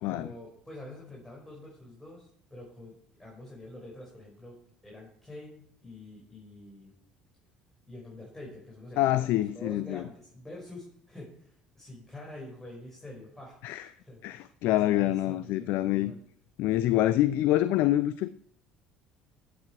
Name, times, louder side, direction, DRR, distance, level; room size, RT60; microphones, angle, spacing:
voice 1, 0.1-4.6 4.8-6.9 7.9-9.3 9.5-13.6 14.0-16.2, left 1 dB, 5° left, 5.2 m, -46 dB
voice 2, 9.0-10.0 13.6-13.8 14.2-16.1 16.6-18.3, left 14 dB, 60° left, 0.5 m, -26 dB
16.0 x 8.0 x 4.7 m
hypercardioid pair, 60°, 4 cm